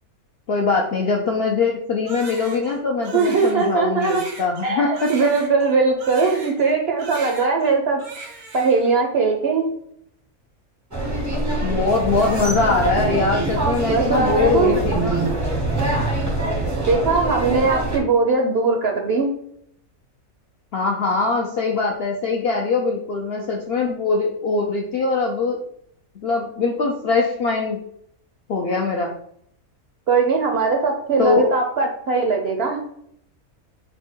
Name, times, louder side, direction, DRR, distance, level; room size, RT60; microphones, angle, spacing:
voice 1, 0.5-5.1 11.6-15.2 17.6-17.7 20.7-25.6 26.2-27.8 28.5-29.2 31.2-31.5, left 4 dB, 65° left, 0 dB, 0.6 m, -22 dB
Crying sobbing, 2.1-6.7 7.0-7.7 8.0-8.9, right 4 dB, 85° right, 1.4 m, -38 dB
voice 2, 3.1-4.2 4.6-8.0 8.5-9.7 13.9-14.8 16.8-19.3 30.1-32.8, right 4 dB, 65° right, 2 dB, 0.6 m, -20 dB
sound 1, 10.9-18.0, right 2 dB, 20° right, 0.5 m, -23 dB
4.2 x 2.2 x 4.4 m, 0.69 s
omnidirectional pair, 1.5 m